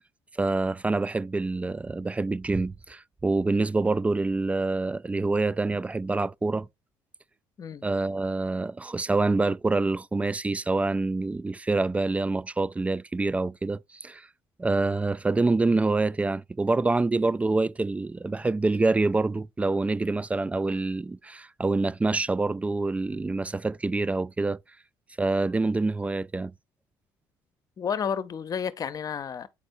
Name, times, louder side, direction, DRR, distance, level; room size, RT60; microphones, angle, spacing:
voice 1, 0.4-6.7 7.8-14.3 14.6-24.6 25.2-26.5, right 3 dB, 15° right, 0.3 m, -26 dB
voice 2, 27.8-29.5, left 7 dB, 45° left, 0.7 m, -31 dB
8.6 x 4.3 x 2.6 m
supercardioid pair, 75°, 8 cm